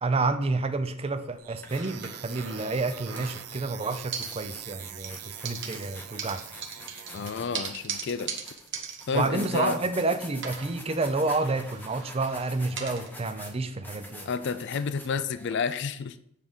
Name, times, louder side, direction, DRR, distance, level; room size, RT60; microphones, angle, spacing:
voice 1, 0.0-6.4 9.1-14.3, right 3 dB, 25° right, 0.5 m, -29 dB
sound 1, 0.7-0.9 1.4-15.5, left 1 dB, 10° left, 0.8 m, -47 dB
sound 2, 1.4-7.4, right 13 dB, 90° right, 0.5 m, -44 dB
sound 3, 1.7-3.7 4.1-4.8 5.0-10.0 10.4-13.1, right 6 dB, 55° right, 1.0 m, -40 dB
voice 2, 7.1-8.3 9.1-9.8 14.2-16.2, left 5 dB, 50° left, 0.4 m, -30 dB
8.3 x 3.7 x 5.2 m
head